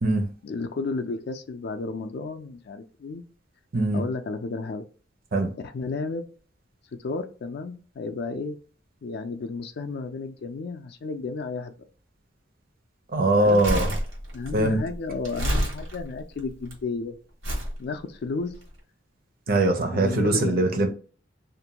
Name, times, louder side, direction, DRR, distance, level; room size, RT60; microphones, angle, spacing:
voice 1, 0.4-3.2 3.9-4.8 5.6-6.3 7.0-8.6 9.0-11.7 13.4-13.6 14.3-17.2 17.8-18.5 19.9-20.9, left 3 dB, 55° left, 0.4 m, -32 dB
voice 2, 3.7-4.0 5.3-5.5 13.1-13.9 14.5-14.8 19.5-20.9, right 2 dB, 50° right, 0.6 m, -22 dB
Crumpling crinkling, 13.4-16.7 17.4-17.8 18.5-18.6, equal, 80° right, 1.2 m, -29 dB
2.5 x 2.2 x 2.8 m
head